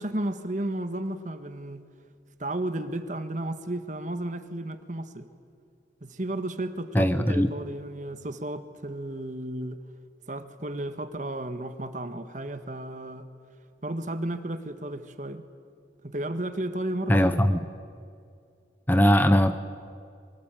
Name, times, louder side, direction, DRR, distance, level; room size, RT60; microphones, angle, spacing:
voice 1, 0.0-1.8 2.4-5.3 6.0-9.8 10.3-13.3 13.8-15.4 16.0-17.7, right 1 dB, 40° right, 9 dB, 1.6 m, -33 dB
voice 2, 6.9-7.5 17.1-17.6 18.9-19.6, equal, 10° left, 10 dB, 0.8 m, -20 dB
26.5 x 24.5 x 9.2 m, 2.3 s
head